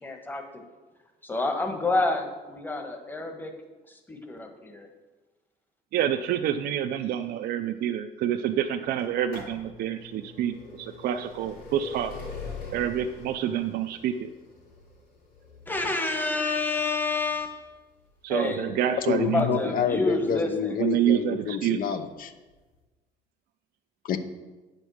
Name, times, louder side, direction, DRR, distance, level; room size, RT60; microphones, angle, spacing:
voice 1, 0.0-0.6 1.2-3.5 3.9-4.9 15.7-17.7 18.3-18.7 19.2-20.7, left 3 dB, 10° left, 4 dB, 1.3 m, -29 dB
voice 2, 5.9-12.1 12.7-14.3 18.2-19.6 20.8-22.0, right 10 dB, 70° right, 7 dB, 0.5 m, -28 dB
sound 1, 9.0-20.6 21.5-21.6 22.5-22.6 22.8-22.9, left 4 dB, 85° left, 3.3 m, -44 dB
voice 3, 19.1-22.3 24.0-24.2, left 7 dB, 55° left, 10 dB, 0.8 m, -28 dB
9.0 x 5.3 x 6.3 m, 1.2 s
cardioid pair, 110°, 17 cm